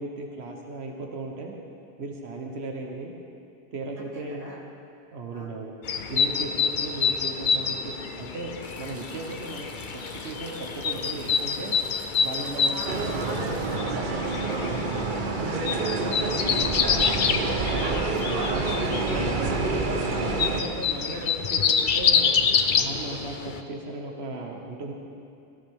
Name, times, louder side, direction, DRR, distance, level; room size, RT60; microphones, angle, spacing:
voice 1, 0.0-1.5 2.0-3.1 3.7-4.5 5.1-5.7 6.1-11.8 12.2-12.7 17.3-18.1 19.1-22.3 22.7-24.9, right 2 dB, 90° right, 1 dB, 1.3 m, -36 dB
voice 2, 4.0-4.6 5.3-5.5 12.4-14.9 15.2-17.3 17.7-19.1 19.9-20.1 21.1-21.3, equal, 35° right, -5 dB, 2.4 m, -41 dB
sound 1, 5.8-23.6, left 6 dB, 55° left, 0.7 m, -27 dB
sound 2, 8.6-13.8, right 1 dB, 15° right, 0.8 m, -46 dB
sound 3, 12.8-20.6, right 3 dB, 55° right, 1.0 m, -28 dB
18.0 x 13.5 x 3.6 m, 2.6 s
omnidirectional pair, 1.0 m